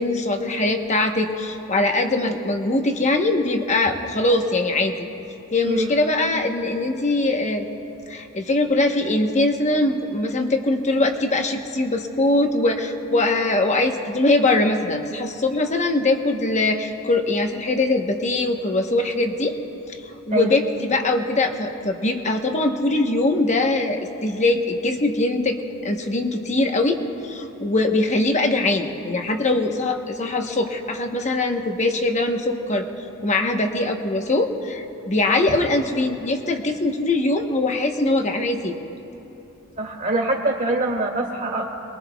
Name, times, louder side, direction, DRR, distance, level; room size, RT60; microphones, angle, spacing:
voice 1, 0.0-4.9 5.5-7.7 8.1-19.6 19.9-20.0 20.3-32.9 33.2-38.7, left 2 dB, 35° left, 4 dB, 1.0 m, -22 dB
voice 2, 39.8-41.7, right 2 dB, 40° right, 0 dB, 2.2 m, -24 dB
28.0 x 21.5 x 2.3 m, 3.0 s
head